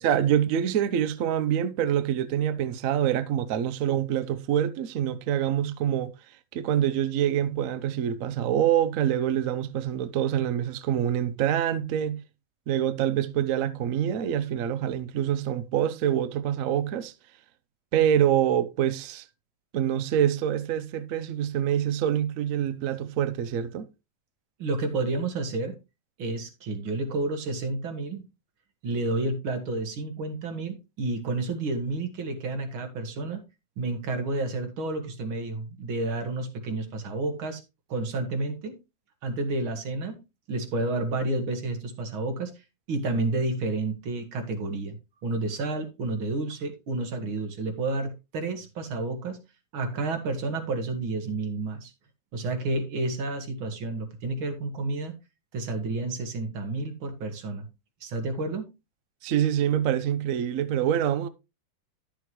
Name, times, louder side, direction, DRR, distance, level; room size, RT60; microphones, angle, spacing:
voice 1, 0.0-6.1 6.5-12.2 12.7-17.1 17.9-19.3 19.7-23.9 59.2-61.3, right 10 dB, 70° right, 0.8 m, -25 dB
voice 2, 24.6-25.8 26.2-28.3 28.8-33.4 33.8-37.6 37.9-38.8 39.2-40.2 40.5-42.5 42.9-45.0 45.2-49.4 49.7-51.9 52.3-55.1 55.5-57.7 58.0-58.7, right 2 dB, 85° right, 2.4 m, -30 dB
11.0 x 6.8 x 3.1 m
omnidirectional pair, 2.2 m